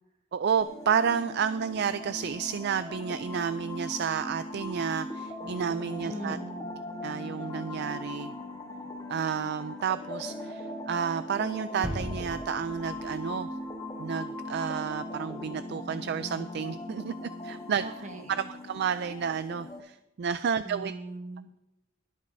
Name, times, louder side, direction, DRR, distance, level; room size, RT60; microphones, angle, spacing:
voice 1, 0.3-6.4 7.0-8.3 9.1-13.5 14.0-17.1 17.4-17.8 18.6-20.9, right 7 dB, 55° right, 13 dB, 0.4 m, -31 dB
sound 1, 0.6-19.8, left 1 dB, 20° left, 1.3 m, -39 dB
voice 2, 6.1-6.7 17.8-18.5 20.6-21.5, right 1 dB, 35° right, 3 dB, 1.7 m, -40 dB
sound 2, 11.8-13.9, equal, 5° right, 2.3 m, -38 dB
23.0 x 8.4 x 2.7 m, 0.92 s
head